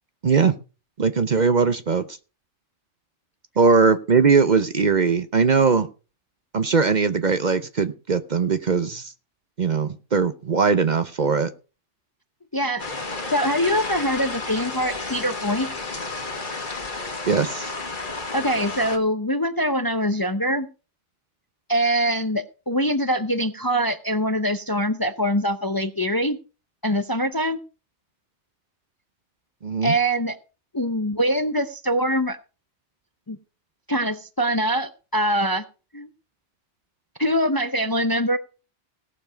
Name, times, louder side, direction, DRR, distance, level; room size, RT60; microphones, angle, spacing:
voice 1, 0.2-0.5 1.0-2.0 3.6-5.9 6.5-9.1 9.6-11.5 17.3-17.7 29.6-29.9, right 5 dB, 45° right, 11 dB, 0.8 m, -20 dB
voice 2, 12.5-12.8 13.3-15.7 18.3-20.7 21.7-26.4 26.8-27.6 29.8-30.4 30.7-32.4 33.3-33.4 33.9-35.6 35.9-36.1 37.2-38.4, equal, 25° left, 10 dB, 0.6 m, -23 dB
sound 1, 12.8-19.0, left 3 dB, 45° left, 1.8 m, -32 dB
17.5 x 7.1 x 5.1 m, 0.34 s
omnidirectional pair, 1.2 m